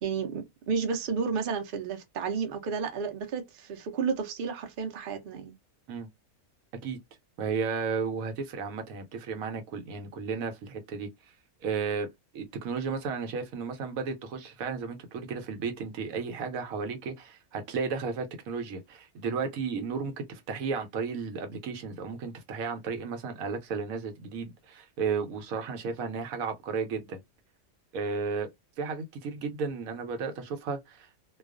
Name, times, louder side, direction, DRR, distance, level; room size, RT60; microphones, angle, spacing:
voice 1, 0.0-5.6, right 5 dB, 60° right, 0.6 m, -32 dB
voice 2, 7.4-11.1 11.6-12.1 12.3-27.2 27.9-28.5 28.8-31.1, right 5 dB, 75° right, 1.0 m, -33 dB
2.3 x 2.3 x 2.3 m
omnidirectional pair, 1.5 m